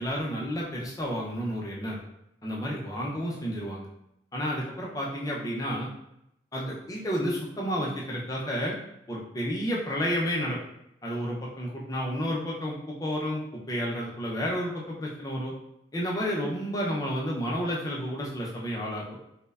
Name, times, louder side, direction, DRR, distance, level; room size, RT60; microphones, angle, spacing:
voice 1, 0.0-2.0 2.4-3.9 4.3-5.9 6.5-8.8 9.1-10.6 11.0-13.4 13.7-15.5 15.9-19.0, equal, 20° left, -3 dB, 0.4 m, -31 dB
3.0 x 2.0 x 2.3 m, 0.80 s
head